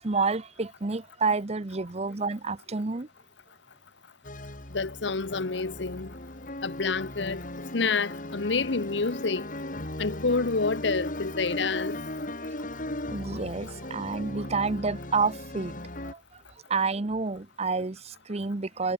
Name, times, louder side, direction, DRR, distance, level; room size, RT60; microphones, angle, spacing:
voice 1, 0.0-3.1 12.4-12.5 13.1-15.7 16.0-16.4 16.7-18.9, right 4 dB, 35° right, 0.8 m, -29 dB
sound 1, 4.2-16.1, left 1 dB, 45° left, 4.5 m, -37 dB
voice 2, 4.7-6.1 6.6-7.4 7.7-9.4 10.0-12.0, left 4 dB, 75° left, 1.0 m, -28 dB
head